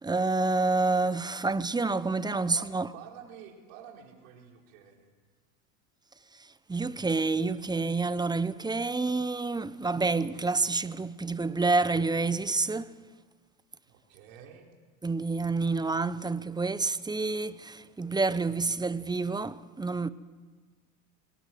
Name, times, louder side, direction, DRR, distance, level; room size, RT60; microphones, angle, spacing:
voice 1, 0.0-2.9 6.4-12.9 15.0-20.1, right 3 dB, 10° right, 0.8 m, -28 dB
voice 2, 2.3-2.7 2.9-5.1 13.9-14.7 18.3-18.7, right 8 dB, 70° right, 4.8 m, -49 dB
24.0 x 18.5 x 7.8 m
supercardioid pair, 105°, 42 cm